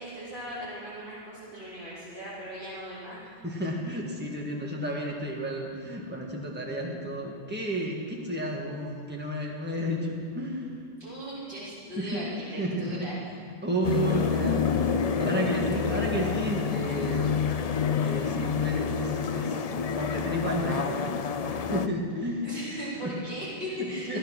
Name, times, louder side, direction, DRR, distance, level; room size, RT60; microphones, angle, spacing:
voice 1, 0.0-3.3 11.0-13.2 22.4-24.2, equal, 50° right, -10 dB, 4.0 m, -38 dB
voice 2, 3.4-10.7 12.0-13.1 13.6-17.3 18.0-19.6 20.0-22.5 23.0-23.1 23.8-24.2, equal, 10° right, -2 dB, 1.7 m, -32 dB
sound 1, 13.8-21.9, left 6 dB, 50° left, 0.5 m, -28 dB
16.5 x 10.5 x 6.0 m, 2.3 s
omnidirectional pair, 1.2 m